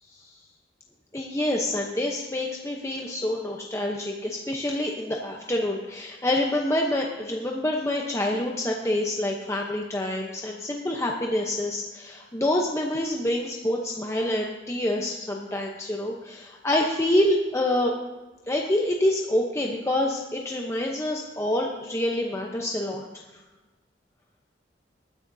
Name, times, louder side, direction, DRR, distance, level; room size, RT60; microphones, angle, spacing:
voice 1, 1.1-17.9 18.5-23.0, left 1 dB, 15° left, 0 dB, 0.8 m, -27 dB
20.0 x 10.0 x 2.7 m, 1.2 s
head